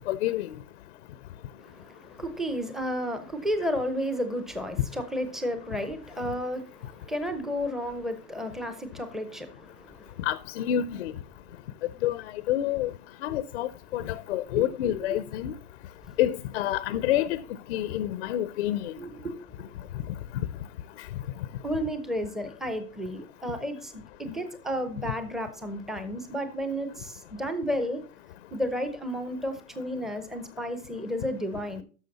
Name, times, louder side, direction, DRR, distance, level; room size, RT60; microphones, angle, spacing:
voice 1, 0.1-0.5 10.2-11.1 12.0-12.2 12.5-12.9 13.2-15.5 16.2-17.4 17.7-18.9, left 12 dB, 45° left, 0.6 m, -28 dB
voice 2, 1.6-10.1 14.8-15.1 19.0-19.3 21.6-28.0 28.5-31.8, equal, ahead, 0.6 m, -32 dB
12.0 x 6.4 x 4.0 m
hypercardioid pair, 135°, 46 cm